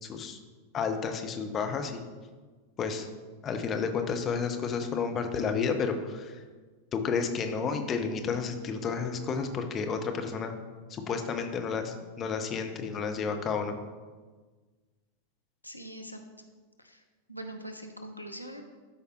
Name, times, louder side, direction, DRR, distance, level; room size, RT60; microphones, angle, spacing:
voice 1, 0.0-0.4 0.7-2.0 2.8-3.1 3.4-6.3 6.9-10.5 10.9-13.7, left 5 dB, 25° left, 5 dB, 0.9 m, -31 dB
voice 2, 15.6-16.2 16.8-17.0 17.3-18.6, right 1 dB, 85° left, 5 dB, 0.7 m, -42 dB
12.5 x 5.0 x 3.2 m, 1.4 s
figure-of-eight pair, 90°, 0 cm